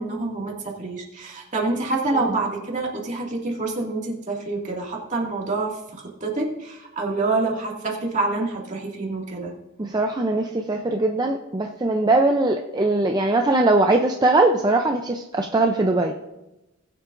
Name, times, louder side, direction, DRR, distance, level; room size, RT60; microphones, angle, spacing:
voice 1, 0.0-9.5, right 3 dB, 40° right, -2 dB, 2.2 m, -27 dB
voice 2, 9.8-16.1, right 2 dB, 20° right, 3 dB, 0.5 m, -21 dB
20.0 x 7.3 x 2.6 m, 0.98 s
head